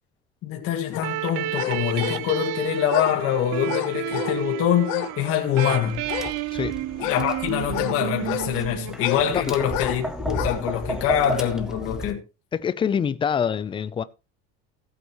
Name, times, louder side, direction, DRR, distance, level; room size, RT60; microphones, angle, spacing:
voice 1, 0.4-6.0 7.0-12.2, left 10 dB, 50° left, 2.0 m, -24 dB
sound 1, 0.9-1.1 1.5-2.3 2.8-3.2 3.6-4.4 4.8-5.2 5.5-6.4 7.0-8.5 9.0-9.3 9.7-10.0 10.3-10.6 11.1-11.2, left 14 dB, 90° left, 1.6 m, -30 dB
sound 2, 1.0-9.5, right 17 dB, 60° right, 0.6 m, -31 dB
Tap, 5.9-12.1, equal, ahead, 1.0 m, -33 dB
voice 2, 9.3-9.7 12.5-14.0, left 7 dB, 15° left, 0.5 m, -25 dB
15.5 x 8.3 x 3.1 m
cardioid pair, 160°, 29 cm